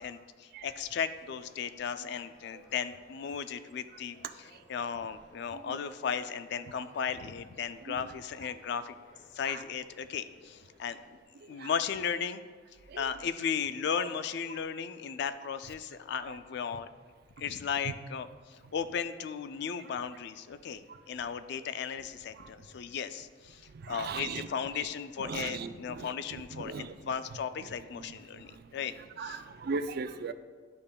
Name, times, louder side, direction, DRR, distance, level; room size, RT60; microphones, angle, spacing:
voice 1, 0.0-4.2 4.7-9.0 9.3-11.2 11.5-12.4 13.0-16.9 17.4-23.6 23.9-28.9 29.2-29.4, left 7 dB, 60° left, 12 dB, 0.3 m, -36 dB
sound 1, 0.7-11.2, left 1 dB, 80° left, 1.3 m, -61 dB
voice 2, 4.2-4.6 5.5-5.8 7.9-8.1 9.5-9.6 11.4-11.7 12.9-13.1 14.0-14.1 16.3-16.4 17.4-17.5 17.8-17.9 18.6-18.7 20.9-21.0 22.3-22.7 23.7-24.5 24.7-24.9 25.2-27.1 27.6-27.7 28.0-30.3, right 4 dB, 55° right, 11 dB, 0.4 m, -40 dB
11.5 x 5.3 x 2.3 m, 1.5 s
head